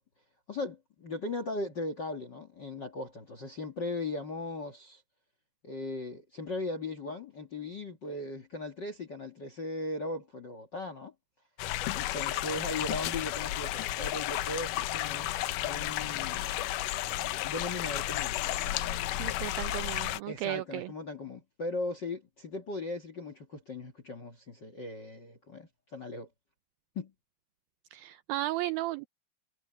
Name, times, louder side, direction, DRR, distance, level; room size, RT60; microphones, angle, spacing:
voice 1, 0.5-5.0 5.6-11.1 11.9-16.5 17.4-19.3 20.2-26.3 26.9-27.1, left 2 dB, 50° left, 1.4 m, -38 dB
sound 1, 11.6-20.2, left 15 dB, 90° left, 1.8 m, -33 dB
voice 2, 19.2-20.9 27.9-29.1, right 16 dB, 90° right, 2.1 m, -34 dB
omnidirectional pair, 4.7 m